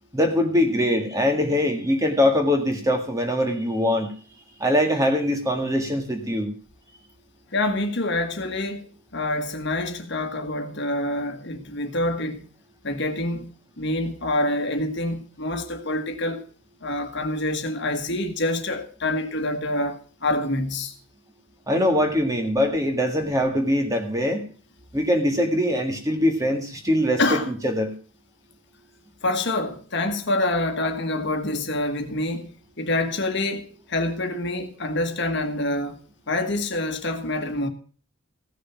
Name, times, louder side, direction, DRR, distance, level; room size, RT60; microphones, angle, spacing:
voice 1, 0.1-4.1 4.6-6.5 21.7-24.4 24.9-27.9, left 1 dB, 15° right, 1.8 m, -22 dB
voice 2, 7.5-12.4 12.8-16.4 16.8-20.9 27.2-27.5 29.2-32.5 32.8-37.7, left 2 dB, 50° left, 1.5 m, -26 dB
16.0 x 6.6 x 5.9 m
head